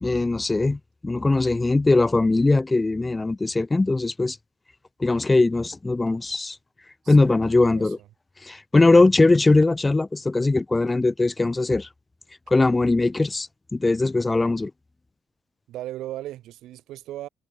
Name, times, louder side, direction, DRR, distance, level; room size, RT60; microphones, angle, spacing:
voice 1, 0.0-4.4 5.0-6.6 7.1-8.0 8.4-11.9 12.5-14.7, left 2 dB, 20° left, 0.8 m, -20 dB
voice 2, 7.0-7.9 15.7-17.3, right 14 dB, 85° right, 2.9 m, -37 dB
cardioid pair, 90°, 0 cm